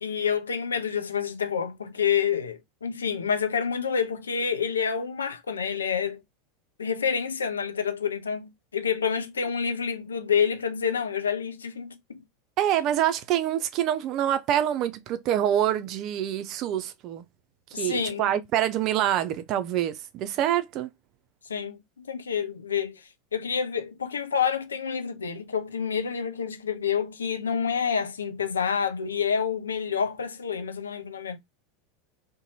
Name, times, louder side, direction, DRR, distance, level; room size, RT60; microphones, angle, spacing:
voice 1, 0.0-6.2 6.8-12.2 17.7-18.3 21.5-31.4, left 7 dB, 80° left, 0.4 m, -28 dB
voice 2, 12.6-17.2 17.7-20.9, right 11 dB, 45° right, 0.4 m, -26 dB
2.6 x 2.2 x 2.8 m
figure-of-eight pair, 80°, 0 cm